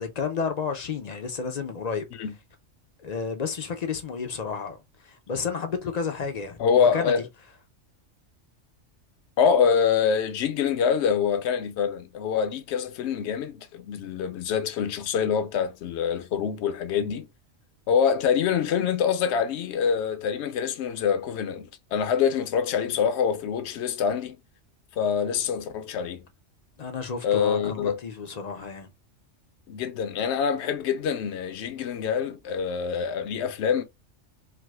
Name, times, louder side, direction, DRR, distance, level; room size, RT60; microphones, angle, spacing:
voice 1, 0.0-2.1 3.0-7.2 26.8-28.9, left 5 dB, 50° left, 0.5 m, -31 dB
voice 2, 6.6-7.2 9.4-17.3 17.9-24.4 25.0-26.2 27.2-28.0 29.7-33.8, left 7 dB, 70° left, 0.8 m, -25 dB
4.6 x 2.0 x 2.3 m
omnidirectional pair, 1.2 m